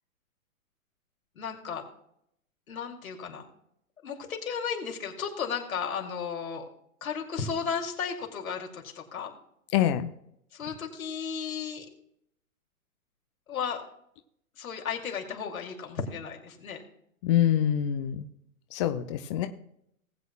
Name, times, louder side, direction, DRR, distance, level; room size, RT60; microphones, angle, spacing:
voice 1, 1.4-1.8 2.7-3.4 4.0-6.6 7.0-9.3 10.5-11.9 13.5-13.8 14.6-16.8, left 6 dB, 75° left, 2 dB, 2.6 m, -34 dB
voice 2, 9.7-10.1 17.2-18.3 18.7-19.5, left 10 dB, 25° left, 8 dB, 0.4 m, -25 dB
19.0 x 8.1 x 2.2 m, 0.73 s
hypercardioid pair, 120°, 42 cm